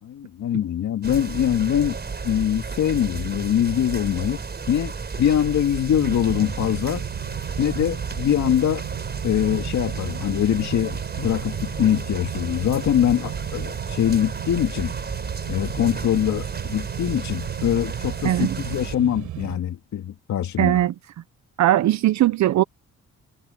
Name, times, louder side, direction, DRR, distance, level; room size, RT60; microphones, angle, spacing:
voice 1, 0.0-2.0 2.2-4.4 4.7-7.0 7.6-8.8 9.2-14.9 15.5-20.8, left 10 dB, 65° left, 2.3 m, -23 dB
sound 1, 1.0-19.0, right 4 dB, 35° right, 5.2 m, -33 dB
sound 2, 5.9-19.6, right 13 dB, 85° right, 6.1 m, -35 dB
voice 2, 18.2-18.6 20.6-20.9 21.6-22.6, right 13 dB, 65° right, 0.8 m, -19 dB
cardioid pair, 90°, 30 cm